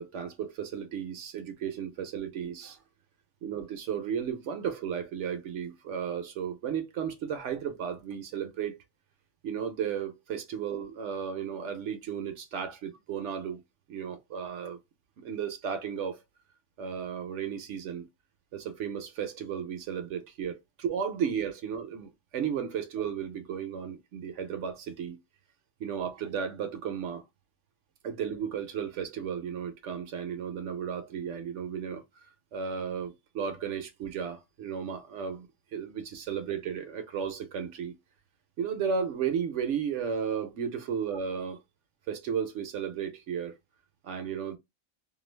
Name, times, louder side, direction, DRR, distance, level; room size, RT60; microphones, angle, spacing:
voice 1, 0.0-2.8 3.4-8.8 9.4-13.6 13.9-14.8 15.2-16.2 16.8-18.1 18.5-25.2 25.8-27.2 28.0-32.0 32.5-38.0 38.6-41.6 42.1-43.5 44.0-44.6, right 7 dB, 65° right, 0.8 m, -34 dB
2.5 x 2.2 x 3.1 m
omnidirectional pair, 1.5 m